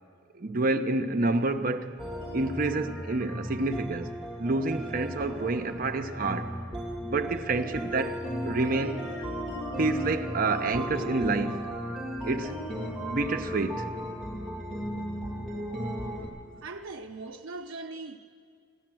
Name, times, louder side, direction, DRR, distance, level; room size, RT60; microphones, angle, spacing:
voice 1, 0.3-2.0 2.3-4.1 4.4-6.6 7.1-9.0 9.8-11.7 12.2-12.6 13.0-13.9, right 3 dB, 45° right, 0.6 m, -28 dB
sound 1, 2.0-16.3, equal, ahead, 2.2 m, -35 dB
voice 2, 16.6-18.2, right 3 dB, 85° right, 0.5 m, -40 dB
15.5 x 11.0 x 7.5 m
head